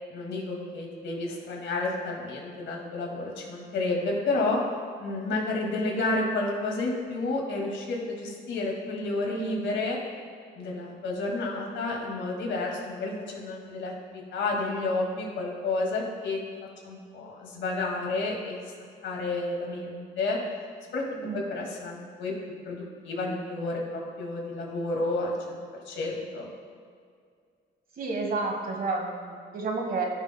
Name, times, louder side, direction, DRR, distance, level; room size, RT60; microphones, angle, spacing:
voice 1, 0.1-4.6 5.0-10.0 10.6-16.4 16.8-18.6 19.0-20.4 20.9-21.0 21.3-22.3 22.7-25.6 25.9-26.5, left 2 dB, 70° left, -1 dB, 2.1 m, -30 dB
voice 2, 28.0-30.0, right 3 dB, 50° right, 2 dB, 1.3 m, -30 dB
16.5 x 6.2 x 2.2 m, 2.1 s
cardioid pair, 90°, 20 cm